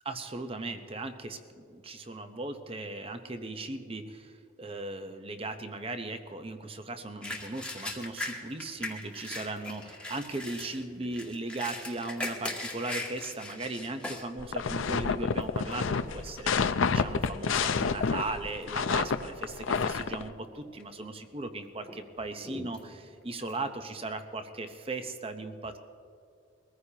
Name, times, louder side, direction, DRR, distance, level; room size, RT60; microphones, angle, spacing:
voice 1, 0.0-25.8, right 2 dB, 30° right, 8 dB, 0.8 m, -38 dB
sound 1, 7.2-14.3 14.8-14.9 15.4-15.8 16.5-16.7 17.0-18.2 18.5-19.0 19.4-19.5 20.3-20.9 21.3-24.4, left 1 dB, 5° left, 1.3 m, -40 dB
sound 2, 14.4-20.2, left 5 dB, 75° left, 0.5 m, -29 dB
22.5 x 14.5 x 2.9 m, 2.4 s
head